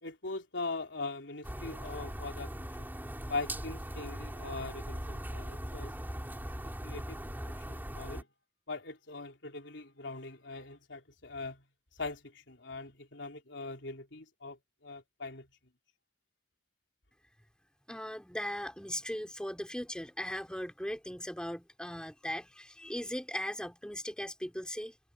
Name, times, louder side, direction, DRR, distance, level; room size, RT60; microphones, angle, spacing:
voice 1, 0.0-2.9 3.3-5.9 6.8-7.2 7.7-8.3 8.7-11.7 11.9-15.5, left 3 dB, 85° left, 3.6 m, -41 dB
sound 1, 1.4-8.2, equal, 10° right, 4.2 m, -40 dB
voice 2, 17.9-25.0, equal, 5° left, 4.4 m, -38 dB
head